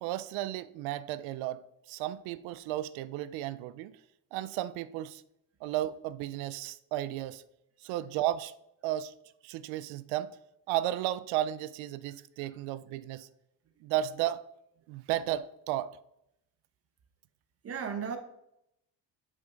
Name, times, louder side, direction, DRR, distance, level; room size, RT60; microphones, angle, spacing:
voice 1, 0.0-1.6 1.9-4.0 4.3-5.2 5.6-7.4 7.8-8.5 8.8-9.1 9.4-10.4 10.7-13.3 13.8-14.4 14.9-16.0, right 13 dB, 85° right, 0.6 m, -33 dB
voice 2, 17.6-18.2, right 6 dB, 30° right, 1.0 m, -37 dB
8.0 x 5.9 x 3.9 m
cardioid pair, 160°, 46 cm